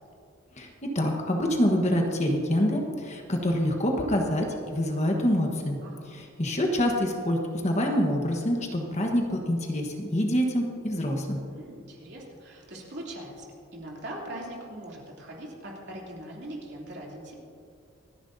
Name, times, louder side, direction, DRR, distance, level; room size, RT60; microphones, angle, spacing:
voice 1, 0.5-5.8 6.1-11.4, equal, 30° left, 2 dB, 1.3 m, -26 dB
voice 2, 11.5-13.5 13.7-17.3, right 1 dB, 50° right, -3 dB, 3.0 m, -41 dB
28.0 x 10.5 x 2.7 m, 2.4 s
head